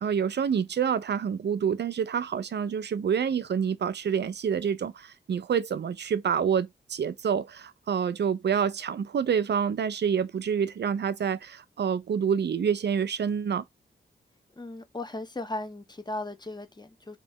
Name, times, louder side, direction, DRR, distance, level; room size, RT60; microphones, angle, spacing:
voice 1, 0.0-13.6, right 7 dB, 60° right, 0.6 m, -27 dB
voice 2, 14.6-17.2, left 2 dB, 20° left, 1.0 m, -37 dB
3.4 x 3.0 x 3.6 m
cardioid pair, 50°, 19 cm